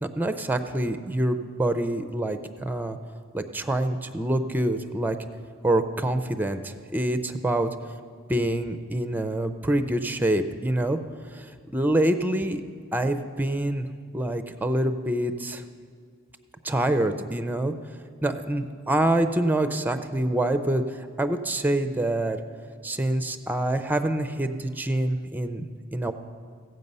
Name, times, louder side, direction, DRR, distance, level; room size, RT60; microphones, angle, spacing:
voice 1, 0.0-3.0 3.3-5.2 5.6-7.7 8.3-11.0 11.3-11.4 11.7-12.6 12.9-13.9 14.1-15.6 16.6-17.7 18.2-20.8 21.2-22.4 22.8-26.1, right 1 dB, 10° right, 9 dB, 0.5 m, -26 dB
16.0 x 7.9 x 5.4 m, 2.2 s
head